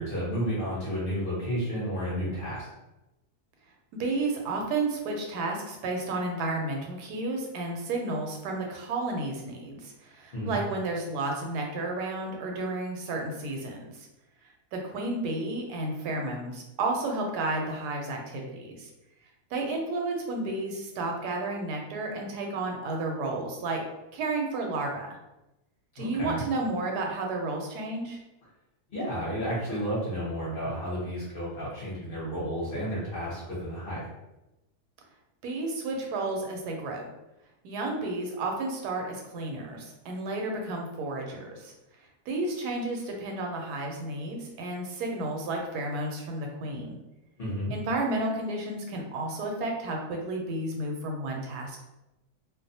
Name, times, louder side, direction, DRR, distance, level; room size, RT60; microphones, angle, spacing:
voice 1, 0.0-2.7 10.3-10.6 26.0-26.4 28.9-34.0 47.4-47.7, equal, 45° left, -7 dB, 0.8 m, -32 dB
voice 2, 3.9-14.1 14.7-18.9 19.5-23.8 24.1-25.2 26.0-28.2 35.4-37.1 37.6-41.7 42.3-47.0 47.7-51.8, right 2 dB, 90° right, 1 dB, 1.1 m, -32 dB
2.6 x 2.0 x 2.6 m, 0.96 s
omnidirectional pair, 1.6 m